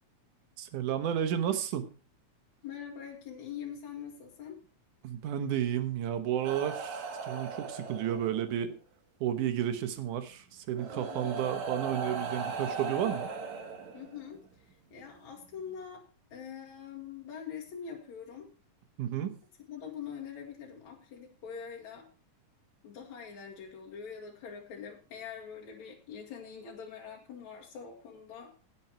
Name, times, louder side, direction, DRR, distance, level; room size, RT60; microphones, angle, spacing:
voice 1, 0.6-1.9 5.0-8.7 9.2-13.3 19.0-19.3, right 10 dB, 85° right, 9 dB, 2.7 m, -32 dB
voice 2, 2.6-4.6 10.9-11.4 13.9-14.4 14.9-16.0 16.3-18.5 19.7-22.1 22.8-28.5, left 7 dB, 70° left, -2 dB, 3.1 m, -44 dB
sound 1, 6.4-8.6 9.9-10.0 10.7-14.4 15.4-15.6, right 4 dB, 70° right, 3.1 m, -38 dB
16.5 x 7.3 x 4.5 m, 0.36 s
omnidirectional pair, 3.5 m